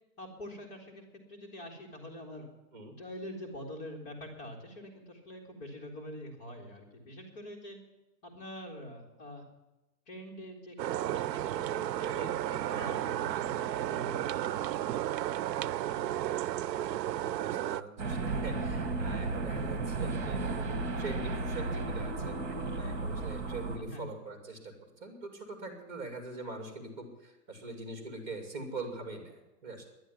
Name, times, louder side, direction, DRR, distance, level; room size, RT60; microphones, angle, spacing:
voice 1, 0.2-2.5 3.0-7.8 8.2-9.4 10.1-14.8 15.8-16.0 23.8-24.1, equal, 25° left, -1 dB, 1.8 m, -45 dB
sound 1, 10.8-17.8, right 12 dB, 90° right, 0.6 m, -33 dB
voice 2, 12.8-13.1 16.7-29.9, right 2 dB, 25° right, 4 dB, 2.5 m, -43 dB
sound 2, 18.0-23.8, right 3 dB, 45° right, 2.0 m, -34 dB
11.0 x 10.5 x 9.4 m, 1.1 s
hypercardioid pair, 175°, 49 cm